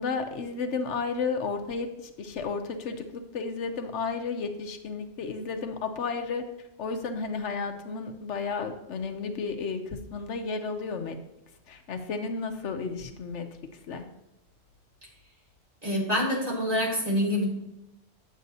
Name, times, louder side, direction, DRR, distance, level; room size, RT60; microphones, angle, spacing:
voice 1, 0.0-6.4 6.8-11.2 11.7-14.0, left 4 dB, 85° left, 6 dB, 1.1 m, -33 dB
voice 2, 15.8-17.5, left 1 dB, 35° right, -4 dB, 2.4 m, -26 dB
9.2 x 7.4 x 2.7 m, 0.92 s
omnidirectional pair, 1.2 m